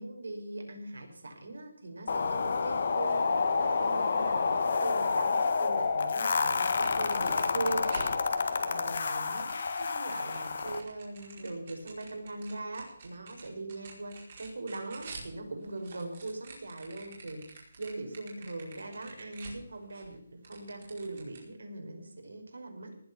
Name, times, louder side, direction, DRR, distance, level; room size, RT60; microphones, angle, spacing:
voice 1, 0.0-23.0, right 2 dB, 85° right, 4 dB, 5.4 m, -41 dB
sound 1, 2.1-10.8, left 4 dB, 40° left, 1.6 m, -29 dB
sound 2, 6.6-8.6 9.0-15.3 15.6-20.1 20.4-21.4, right 4 dB, 30° right, 4.8 m, -49 dB
19.0 x 7.8 x 7.0 m, 0.67 s
hypercardioid pair, 180°, 0 cm